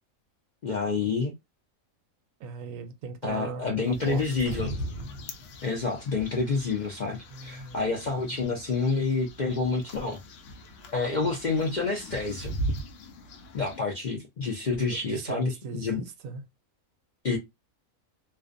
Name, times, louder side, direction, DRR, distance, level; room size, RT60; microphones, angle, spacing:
voice 1, 0.6-1.3 3.2-4.7 5.6-10.2 10.9-12.5 13.5-16.0 17.2-17.4, left 4 dB, 55° left, 0.5 m, -28 dB
voice 2, 2.4-4.2 7.3-7.9 14.9-16.4, right 5 dB, 80° right, 1.0 m, -38 dB
sound 1, 3.8-13.8, right 1 dB, 70° left, 0.9 m, -40 dB
sound 2, 4.5-7.3 7.6-7.7, equal, 65° right, 0.6 m, -40 dB
2.4 x 2.1 x 2.5 m
omnidirectional pair, 1.4 m